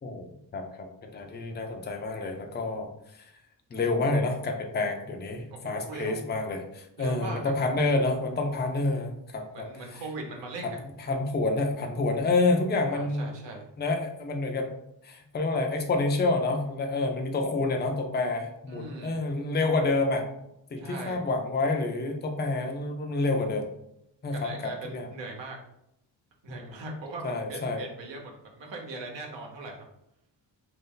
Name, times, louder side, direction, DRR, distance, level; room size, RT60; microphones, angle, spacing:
voice 1, 0.0-2.9 3.7-9.7 11.1-13.3 13.8-14.7 15.0-20.3 20.7-23.7 24.2-25.1 26.5-26.7 27.2-27.8, left 3 dB, 25° left, 3 dB, 0.5 m, -28 dB
voice 2, 5.5-6.2 7.0-7.8 9.5-10.8 12.9-13.7 18.7-19.1 20.8-21.2 24.3-25.6 26.4-29.8, right 2 dB, 75° right, 1 dB, 1.0 m, -40 dB
3.0 x 2.8 x 3.7 m, 0.80 s
cardioid pair, 95°, 44 cm